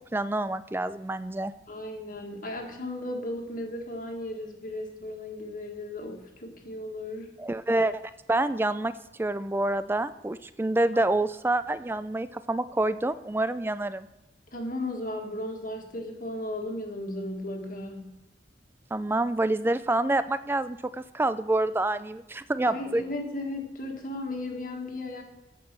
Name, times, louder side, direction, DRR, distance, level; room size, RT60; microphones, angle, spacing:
voice 1, 0.1-1.5 7.4-8.0 8.3-8.9 9.2-14.1 18.9-23.0, right 2 dB, 10° right, 14 dB, 0.3 m, -27 dB
voice 2, 1.7-7.3 14.5-18.1 22.6-25.2, left 1 dB, 45° left, 2 dB, 1.6 m, -35 dB
14.5 x 5.4 x 5.9 m, 0.94 s
head